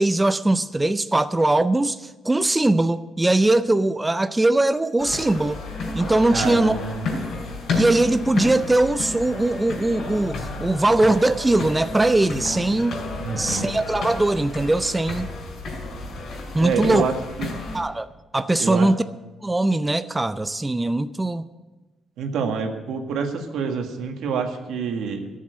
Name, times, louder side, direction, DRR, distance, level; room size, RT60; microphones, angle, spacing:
voice 1, 0.0-5.6 5.9-6.8 7.8-13.0 13.3-15.3 16.5-17.0 17.7-18.1 18.3-19.0 19.4-21.5, right 2 dB, 15° right, 12 dB, 0.4 m, -21 dB
sound 1, 5.0-17.8, left 3 dB, 65° left, 5.1 m, -31 dB
voice 2, 6.3-7.0 13.2-13.7 16.6-17.6 18.6-18.9 22.2-25.3, right 6 dB, 80° right, 4 dB, 1.6 m, -27 dB
13.0 x 7.5 x 9.1 m, 1.2 s
cardioid pair, 90°, 0 cm